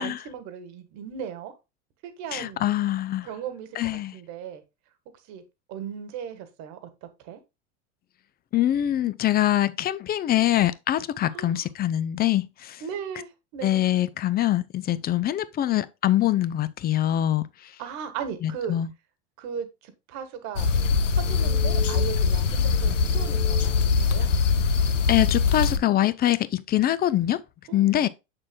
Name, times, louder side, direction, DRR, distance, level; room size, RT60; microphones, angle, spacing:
voice 1, 0.0-1.5 2.0-2.7 3.2-3.7 4.1-4.6 5.3-5.4 5.7-7.4 11.3-11.7 12.8-13.8 17.8-18.7 19.4-20.7 21.1-24.3 27.7-28.1, right 7 dB, 50° right, 1.5 m, -37 dB
voice 2, 2.3-3.3 3.8-4.1 8.5-12.8 13.6-17.4 18.4-18.9 25.1-27.4 27.7-28.1, left 13 dB, 25° left, 0.5 m, -24 dB
sound 1, 20.6-25.8, left 5 dB, 90° left, 0.7 m, -22 dB
7.3 x 6.6 x 2.2 m
hypercardioid pair, 85°, 36 cm